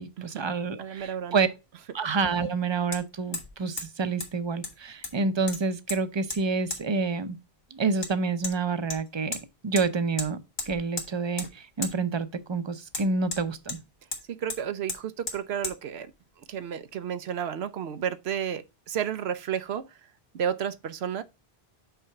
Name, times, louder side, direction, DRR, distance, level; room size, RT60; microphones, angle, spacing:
voice 1, 0.0-1.5 1.9-7.4 7.7-9.4 9.6-10.4 10.7-13.8, right 4 dB, 30° right, 0.7 m, -28 dB
voice 2, 0.8-1.4 14.3-16.1 16.4-20.0 20.3-21.2, right 8 dB, 75° right, 0.9 m, -32 dB
Hammer, 1.0-1.1 2.9-3.0 3.3-3.5 3.8-3.9 4.2-4.3 4.6-5.2 5.5-6.0 6.3-6.4 6.7-6.8 8.0-8.1 8.4-8.6 8.9-9.4 9.8-9.9 10.2-10.3 10.6-11.1 11.4-11.5 11.8-11.9 12.9-13.8 14.1-14.2 14.5-14.6 14.9-15.0 15.3-15.4 15.6-15.8, left 3 dB, 65° left, 1.8 m, -34 dB
5.8 x 4.2 x 5.8 m
omnidirectional pair, 1.1 m